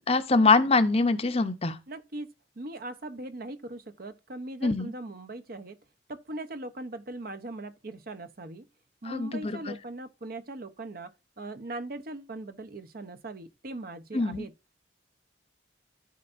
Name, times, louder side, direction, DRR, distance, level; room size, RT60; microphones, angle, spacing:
voice 1, 0.1-1.8 4.6-4.9 9.0-9.8 14.1-14.5, left 3 dB, 30° left, 0.7 m, -24 dB
voice 2, 1.9-5.8 6.1-8.7 9.0-14.5, right 2 dB, 50° right, 0.7 m, -40 dB
13.5 x 4.4 x 2.5 m
head